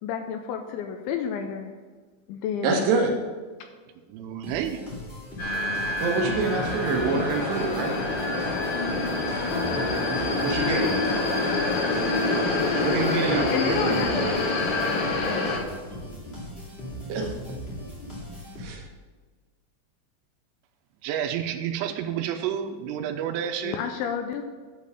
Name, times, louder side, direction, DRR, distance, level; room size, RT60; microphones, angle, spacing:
voice 1, 0.0-1.7 2.3-2.8 3.6-3.7 9.5-10.0 10.3-12.3 13.5-14.6 23.6-24.4, left 8 dB, 85° left, 5 dB, 2.7 m, -32 dB
voice 2, 2.6-3.2 6.0-8.0 10.4-11.0 12.8-14.4 17.1-17.3 18.6-18.9, right 4 dB, 70° right, 2 dB, 2.7 m, -26 dB
voice 3, 4.1-4.8 21.0-23.8, right 9 dB, 85° right, 6 dB, 3.2 m, -30 dB
sound 1, 4.4-19.0, equal, 30° left, 1.2 m, -38 dB
sound 2, 5.4-15.6, left 2 dB, 45° left, 2.7 m, -26 dB
10.5 x 5.3 x 6.6 m, 1.4 s
omnidirectional pair, 5.9 m